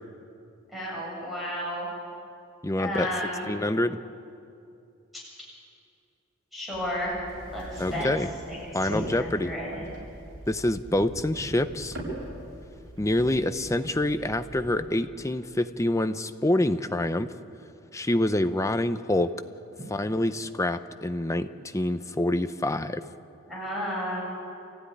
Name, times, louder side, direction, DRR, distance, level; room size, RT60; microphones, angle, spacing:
voice 1, 0.7-1.9 2.8-3.5 6.5-7.1 7.5-8.1 8.5-8.6 8.9-9.8 23.5-24.2, equal, ahead, -6 dB, 7.8 m, -32 dB
voice 2, 2.6-3.1 3.5-4.0 7.8-8.3 8.7-9.5 10.5-12.0 13.0-17.3 17.9-19.3 19.9-23.0, left 1 dB, 15° left, 10 dB, 0.7 m, -26 dB
sound 1, 6.7-14.8, right 1 dB, 70° right, 8.0 m, -40 dB
27.5 x 15.5 x 9.9 m, 2.6 s
head